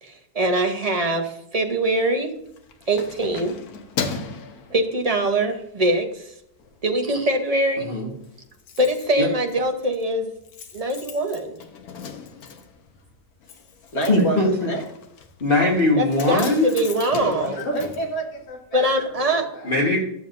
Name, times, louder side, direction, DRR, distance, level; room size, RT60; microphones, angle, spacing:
voice 1, 0.0-2.3 2.9-3.5 4.7-6.3 6.8-7.9 8.8-10.3 10.7-11.6 16.0-17.7 18.7-19.5, right 1 dB, 30° right, 4 dB, 0.7 m, -23 dB
Keys jangling, 2.4-5.4 5.9-6.1 6.5-7.2 7.4-7.5 7.8-7.9 8.1-18.9 19.2-19.3, left 6 dB, 70° left, 1.4 m, -37 dB
voice 2, 7.8-8.1 9.2-9.3 14.1-14.7 15.4-16.7 19.6-20.0, left 2 dB, 35° left, -3 dB, 1.6 m, -20 dB
voice 3, 13.9-14.4 14.7-14.8 17.1-19.8, right 2 dB, 85° left, -1 dB, 2.5 m, -28 dB
12.0 x 7.1 x 2.6 m, 0.76 s
omnidirectional pair, 1.7 m